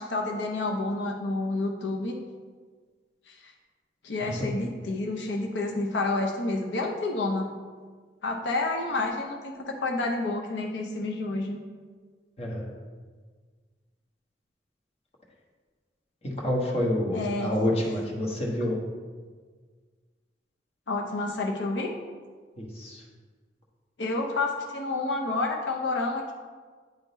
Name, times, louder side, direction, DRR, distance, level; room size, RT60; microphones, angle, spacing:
voice 1, 0.0-2.2 3.3-3.5 4.0-7.5 8.2-11.6 17.1-17.5 20.9-21.9 24.0-26.3, left 2 dB, 90° left, 2 dB, 0.7 m, -29 dB
voice 2, 12.4-12.7 16.2-18.7 22.6-23.0, left 1 dB, 35° left, -1 dB, 1.2 m, -28 dB
9.4 x 3.8 x 4.0 m, 1.5 s
head